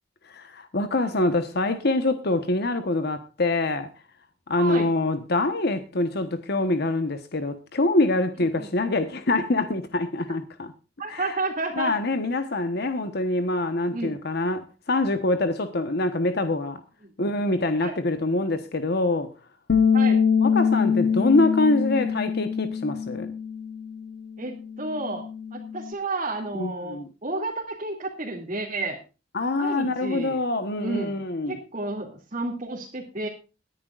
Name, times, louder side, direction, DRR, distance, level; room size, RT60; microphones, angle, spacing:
voice 1, 0.3-3.9 4.5-10.7 11.1-11.4 11.8-16.8 17.2-19.3 20.4-23.3 26.5-27.1 29.3-31.6, left 2 dB, 60° left, 1.2 m, -25 dB
voice 2, 4.6-4.9 8.5-8.7 11.0-11.9 13.9-14.1 17.0-17.1 17.8-17.9 19.9-20.2 24.4-25.2 25.5-29.0 29.6-30.4 30.8-31.1 31.5-33.3, right 2 dB, 40° right, 2.5 m, -31 dB
Bass guitar, 19.7-25.9, left 6 dB, 80° left, 1.1 m, -24 dB
22.0 x 10.0 x 2.5 m
head